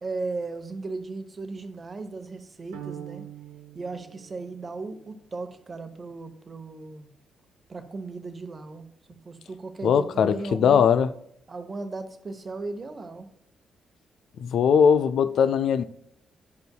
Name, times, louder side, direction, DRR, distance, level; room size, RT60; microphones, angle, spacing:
voice 1, 0.0-3.3 3.7-7.1 7.7-8.9 9.2-10.8 11.5-13.3, right 3 dB, 40° right, 0.9 m, -36 dB
sound 1, 2.7-5.0, right 11 dB, 85° right, 0.7 m, -43 dB
voice 2, 9.8-11.1 14.4-15.8, left 7 dB, 65° left, 0.4 m, -20 dB
10.5 x 5.3 x 2.3 m
hypercardioid pair, 40°, 0 cm